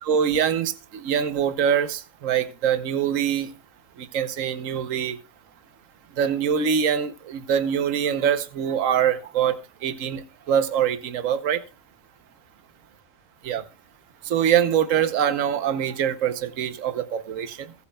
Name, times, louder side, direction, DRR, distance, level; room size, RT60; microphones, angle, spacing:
voice 1, 0.0-3.5 4.0-5.2 6.2-11.6 13.4-13.6 14.2-17.7, right 8 dB, 75° right, 1.3 m, -24 dB
22.0 x 8.3 x 2.3 m
omnidirectional pair, 1.4 m